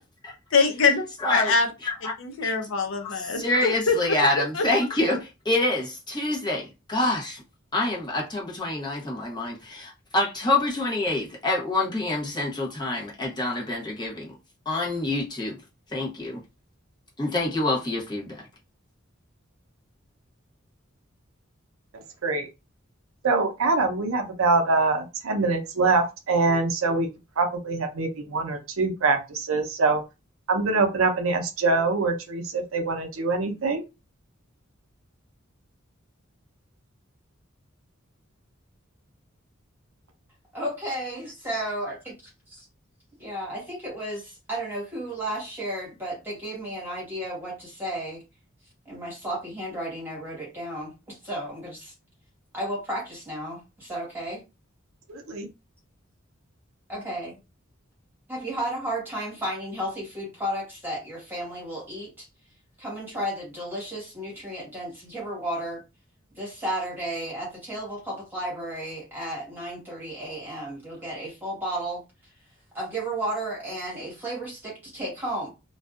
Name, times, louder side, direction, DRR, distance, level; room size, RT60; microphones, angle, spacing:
voice 1, 0.5-1.0 1.3-1.7 2.2-4.0 4.5-4.6, left 4 dB, 70° left, 0.6 m, -23 dB
voice 2, 1.2-1.5 1.8-2.1 2.4-2.5 3.0-7.4 7.7-14.4 14.7-15.6 15.9-16.4 17.2-18.4, left 2 dB, 20° left, 0.8 m, -26 dB
voice 3, 23.2-27.1 27.4-30.0 30.5-33.8 55.1-55.5, right 3 dB, 85° right, 0.6 m, -24 dB
voice 4, 40.5-41.9 43.2-48.2 48.9-51.9 52.5-54.4 56.9-57.3 58.3-62.3 62.8-65.8 66.3-72.0 72.7-75.5, right 1 dB, 10° right, 1.3 m, -33 dB
2.5 x 2.3 x 2.4 m
head